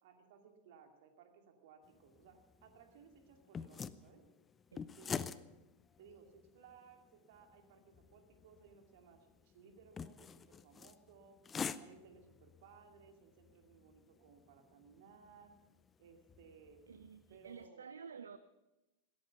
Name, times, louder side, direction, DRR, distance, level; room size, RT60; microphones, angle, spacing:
voice 1, 0.0-4.2 5.0-5.4 6.0-11.4 11.8-15.5 16.0-16.8 17.3-17.9, right 6 dB, 55° right, 4 dB, 2.4 m, -61 dB
sound 1, 1.8-17.7, left 6 dB, 20° left, 0.6 m, -49 dB
voice 2, 16.9-18.4, right 6 dB, 70° right, 13 dB, 0.5 m, -51 dB
17.0 x 13.5 x 5.8 m, 1.0 s
figure-of-eight pair, 90°, 0 cm